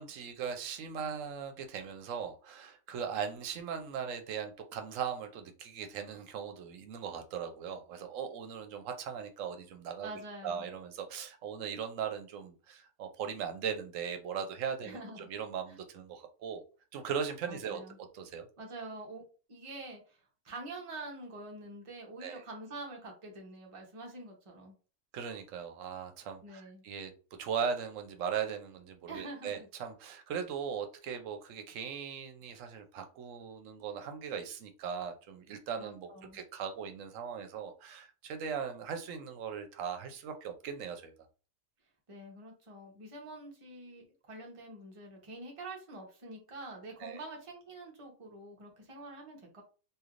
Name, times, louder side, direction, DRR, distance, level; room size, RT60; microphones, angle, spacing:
voice 1, 0.0-10.1 10.4-16.6 16.9-18.5 22.2-22.4 25.1-27.1 27.4-41.1 47.0-47.2, right 7 dB, 75° right, 6 dB, 1.0 m, -39 dB
voice 2, 10.0-10.7 14.8-15.3 15.7-15.8 17.5-18.0 18.6-19.2 19.5-24.7 26.4-26.8 29.1-29.7 35.8-36.4 42.1-49.6, right 2 dB, 30° right, 0 dB, 0.8 m, -46 dB
3.2 x 2.6 x 2.4 m, 0.36 s
omnidirectional pair, 1.4 m